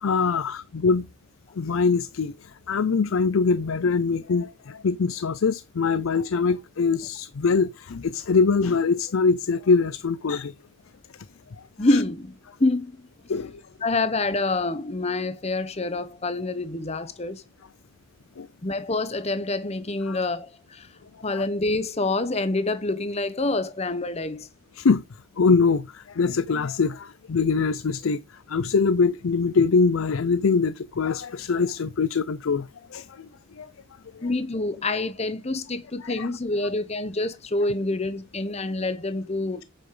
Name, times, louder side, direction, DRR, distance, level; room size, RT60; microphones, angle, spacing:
voice 1, 0.0-1.1 1.6-10.5 11.9-12.0 13.3-13.6 18.4-18.5 20.1-20.2 21.3-21.4 24.8-25.0 25.4-28.2 28.5-33.3 33.6-33.7 34.1-34.3 36.0-36.3, left 4 dB, 80° left, 0.5 m, -23 dB
voice 2, 11.8-13.1 13.8-17.4 18.6-20.9 21.2-24.5 34.2-39.6, left 2 dB, 30° left, 1.0 m, -27 dB
8.9 x 7.2 x 3.8 m
head